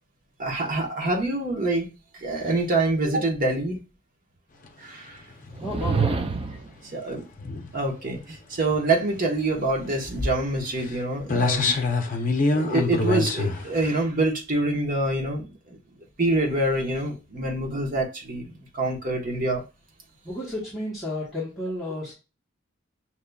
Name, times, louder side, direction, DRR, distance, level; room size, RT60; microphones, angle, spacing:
voice 1, 0.4-1.9 2.2-3.8 4.8-5.2 6.9-7.2 7.7-11.7 12.5-15.8 16.2-19.6, right 2 dB, 45° right, 1.2 m, -26 dB
sound 1, 5.3-5.8 6.2-6.5 7.1-7.7 8.6-8.9 9.2-9.3 9.5-9.6 9.8-10.2 10.8-10.9 11.2-13.9, left 3 dB, 40° left, 0.6 m, -26 dB
sound 2, 5.5-6.7, right 4 dB, 30° right, 0.3 m, -26 dB
voice 2, 5.6-6.3 20.2-22.1, left 1 dB, ahead, 1.3 m, -32 dB
6.5 x 2.9 x 2.3 m
head